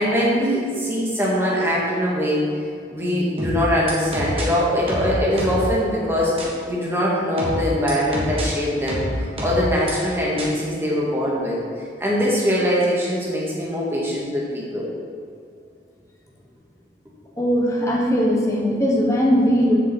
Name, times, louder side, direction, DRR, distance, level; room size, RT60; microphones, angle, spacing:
voice 1, 0.0-2.4 2.9-11.6 12.0-14.8, equal, 15° right, -5 dB, 1.9 m, -22 dB
sound 1, 3.4-4.4 4.9-5.7 6.4-6.5 7.4-8.4 8.9-9.9 10.4-10.5, right 1 dB, 30° right, 1.6 m, -27 dB
voice 2, 17.4-19.8, equal, 15° left, -2 dB, 1.2 m, -19 dB
7.5 x 5.3 x 7.0 m, 2.3 s
head